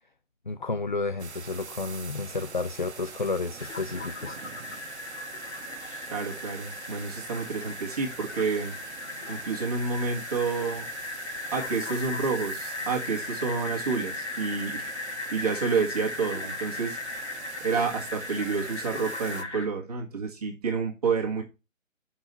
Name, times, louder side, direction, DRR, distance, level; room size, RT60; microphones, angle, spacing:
voice 1, 0.5-4.4, left 3 dB, 40° left, 0.4 m, -31 dB
sound 1, 1.2-19.4, right 5 dB, 55° right, 1.0 m, -44 dB
sound 2, 3.6-19.7, left 3 dB, 55° left, 3.0 m, -37 dB
voice 2, 6.1-8.7 9.3-10.9 11.5-17.0 17.6-21.4, right 5 dB, 30° right, 1.6 m, -29 dB
7.0 x 5.5 x 4.4 m
figure-of-eight pair, 150°, 40 cm